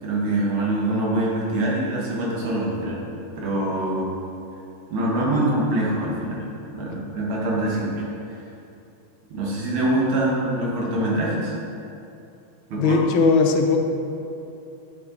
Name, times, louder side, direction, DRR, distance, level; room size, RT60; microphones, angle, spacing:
voice 1, 0.0-3.0 3.4-4.1 4.9-6.4 6.7-8.4 9.3-11.5 12.7-13.0, right 1 dB, 85° right, -4 dB, 2.3 m, -24 dB
voice 2, 12.8-13.8, left 4 dB, 80° left, 4 dB, 1.5 m, -18 dB
7.1 x 6.3 x 4.0 m, 2.7 s
omnidirectional pair, 2.2 m